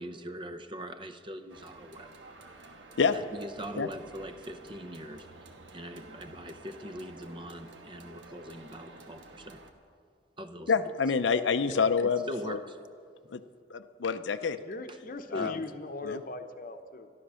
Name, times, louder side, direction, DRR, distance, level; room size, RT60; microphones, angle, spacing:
voice 1, 0.0-2.1 3.1-5.3 5.7-9.6 10.4-10.7 12.0-12.8 14.9-15.0 15.3-15.5, equal, 25° right, 9 dB, 0.6 m, -42 dB
sound 1, 1.5-9.7, right 2 dB, 80° right, 1.3 m, -51 dB
voice 2, 10.7-12.6 13.3-13.4 13.7-14.6 15.3-15.6 16.0-16.2, left 5 dB, 75° left, 11 dB, 0.5 m, -27 dB
voice 3, 14.6-17.1, left 2 dB, 45° left, 8 dB, 0.8 m, -39 dB
13.0 x 12.0 x 6.2 m, 2.2 s
head